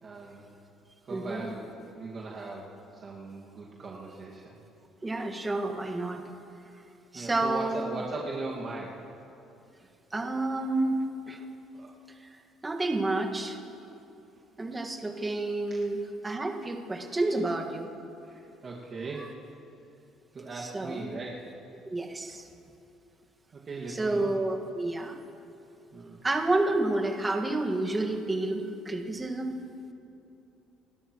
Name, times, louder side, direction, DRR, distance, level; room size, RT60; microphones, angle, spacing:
voice 1, 0.0-0.5 1.0-2.8 3.0-4.6 7.1-9.0 11.7-11.9 15.7-15.8 18.2-19.3 20.3-21.4 23.5-24.3 25.9-26.2, right 3 dB, 45° right, -4 dB, 2.0 m, -39 dB
voice 2, 1.1-1.5 5.0-6.2 7.1-8.0 10.1-11.4 12.2-12.3 12.6-13.6 14.6-17.9 20.6-21.0 21.9-22.4 23.9-25.2 26.2-29.6, right 2 dB, 20° right, 2 dB, 1.8 m, -30 dB
29.5 x 12.5 x 3.1 m, 2.8 s
supercardioid pair, 80°, 0 cm